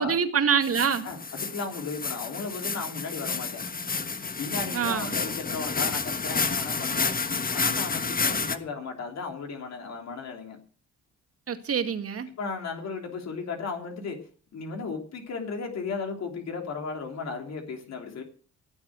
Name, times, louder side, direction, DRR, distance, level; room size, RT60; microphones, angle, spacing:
voice 1, 0.0-1.1 4.7-5.2 11.5-12.3, right 7 dB, 50° right, 8 dB, 2.1 m, -25 dB
sound 1, 0.6-8.6, left 5 dB, 30° left, 1.4 m, -30 dB
voice 2, 1.0-3.6 4.4-7.1 7.5-10.6 12.4-14.2 14.5-18.2, left 4 dB, 60° left, 3 dB, 3.2 m, -35 dB
17.5 x 7.3 x 7.7 m, 0.42 s
cardioid pair, 90°, 30 cm